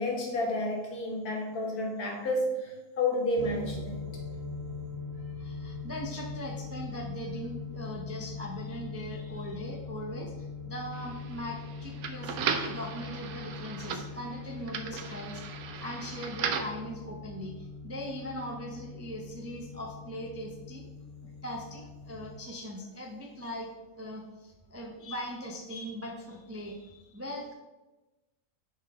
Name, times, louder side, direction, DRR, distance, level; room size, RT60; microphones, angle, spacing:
voice 1, 0.0-2.7 3.0-4.0, left 1 dB, 75° left, -1 dB, 1.9 m, -30 dB
sound 1, 3.4-22.4, left 4 dB, 50° right, 1.0 m, -42 dB
voice 2, 5.2-15.4 15.8-20.9 21.4-23.7 23.9-27.5, equal, 20° right, 0 dB, 0.4 m, -40 dB
sound 2, 10.9-16.8, right 7 dB, 70° right, 1.1 m, -37 dB
6.4 x 5.5 x 3.6 m, 1.1 s
omnidirectional pair, 1.6 m